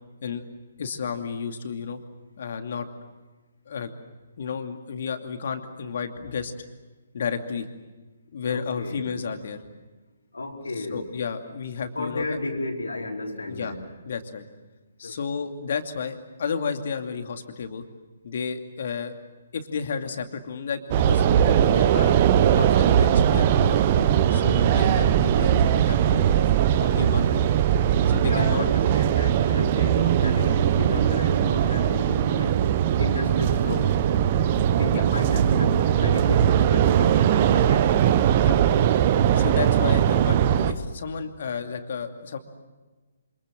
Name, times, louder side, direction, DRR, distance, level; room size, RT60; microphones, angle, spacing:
voice 1, 0.8-2.0 2.4-2.9 3.7-3.9 4.4-6.5 7.1-7.7 8.3-9.6 10.8-12.4 13.5-13.8 14.0-14.5 15.0-17.8 18.2-19.1 19.5-22.2 22.5-23.8 24.3-27.5 28.1-28.9 34.9-35.0 38.3-38.6 39.3-42.4, left 6 dB, 50° left, 6 dB, 2.6 m, -32 dB
voice 2, 8.5-9.0 10.3-11.1 11.9-13.8 15.0-15.2 28.2-32.7 33.0-34.0 34.8-38.1, left 2 dB, 70° left, 1 dB, 4.8 m, -33 dB
sound 1, 20.9-40.7, right 10 dB, 35° right, 1.2 m, -20 dB
27.5 x 27.5 x 7.6 m, 1.2 s
figure-of-eight pair, 135°, 0 cm